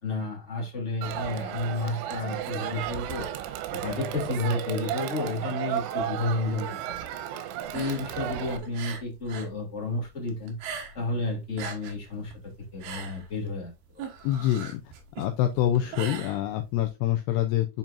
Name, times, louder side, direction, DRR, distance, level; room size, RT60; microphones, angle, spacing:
voice 1, 0.0-3.3 3.7-7.0 7.7-10.6 10.9-12.3 12.7-14.0, left 2 dB, 20° left, 2.0 m, -31 dB
Crowd, 1.0-8.6, right 10 dB, 85° right, 3.4 m, -34 dB
sound 1, 7.6-9.6 9.8-11.2 11.4-16.9, right 7 dB, 65° right, 3.0 m, -40 dB
voice 2, 14.2-14.8 15.2-17.7, left 12 dB, 90° left, 2.4 m, -26 dB
7.5 x 7.3 x 2.6 m
omnidirectional pair, 5.8 m